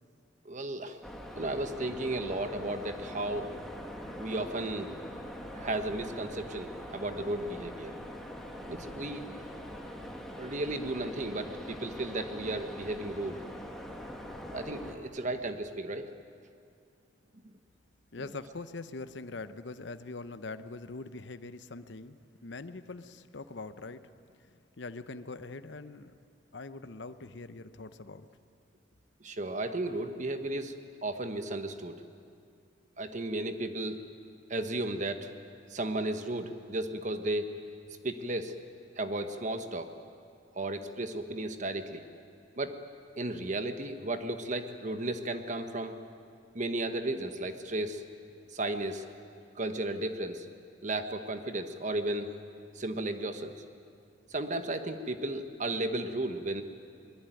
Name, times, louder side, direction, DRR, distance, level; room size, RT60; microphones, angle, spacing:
voice 1, 0.4-1.0 1.4-3.6 4.2-4.9 5.5-8.0 8.7-9.3 10.4-13.4 14.5-16.1 29.2-32.0 33.0-34.0 34.5-35.3 35.7-37.6 38.0-38.5 39.0-39.9 40.5-42.0 42.6-42.8 43.2-46.0 46.5-48.0 48.5-49.0 49.5-50.5 50.8-52.4 52.7-53.5 54.3-56.6, right 2 dB, 40° right, 8 dB, 1.2 m, -34 dB
sound 1, 1.0-14.9, equal, ahead, 2.1 m, -43 dB
voice 2, 18.1-24.0 24.8-26.1 26.5-28.3, left 3 dB, 65° left, 11 dB, 0.8 m, -43 dB
23.0 x 20.5 x 9.2 m, 2.4 s
head